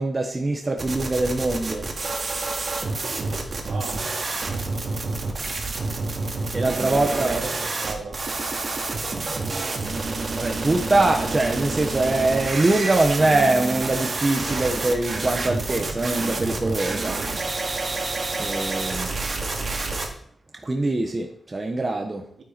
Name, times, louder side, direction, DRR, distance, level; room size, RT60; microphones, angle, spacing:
voice 1, 0.0-1.9 6.5-7.3 10.4-17.2 18.4-19.1 20.6-22.2, right 2 dB, 25° right, 2 dB, 1.1 m, -23 dB
sound 1, 0.8-20.1, right 3 dB, 45° right, 2.0 m, -28 dB
voice 2, 3.6-4.1 6.8-8.2 22.4-22.5, right 4 dB, 70° right, 0 dB, 3.2 m, -35 dB
11.5 x 9.4 x 4.5 m, 0.66 s
wide cardioid pair, 135°, 0 cm